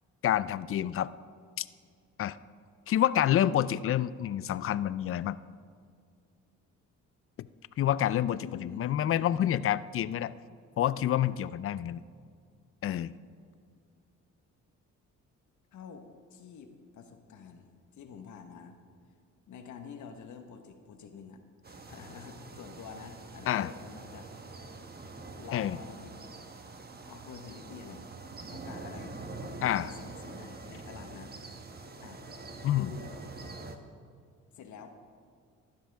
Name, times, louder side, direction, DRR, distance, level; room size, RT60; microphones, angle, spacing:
voice 1, 0.2-1.1 1.6-1.7 2.2-2.4 2.9-5.4 7.4-7.5 7.8-10.3 10.8-12.0 12.8-13.1 23.5-23.7 25.5-25.8 29.6-29.9 32.6-32.9, left 11 dB, 45° left, 17 dB, 0.4 m, -28 dB
voice 2, 8.4-9.5 15.7-18.8 19.5-24.3 25.4-26.4 27.1-28.1 28.5-29.2 29.6-31.3 32.0-32.2 32.7-33.2 34.5-35.0, left 6 dB, 70° left, 6 dB, 1.3 m, -48 dB
sound 1, 21.6-33.8, right 3 dB, 30° right, 1.2 m, -45 dB
15.5 x 12.0 x 3.5 m, 2.2 s
cardioid pair, 90°, 30 cm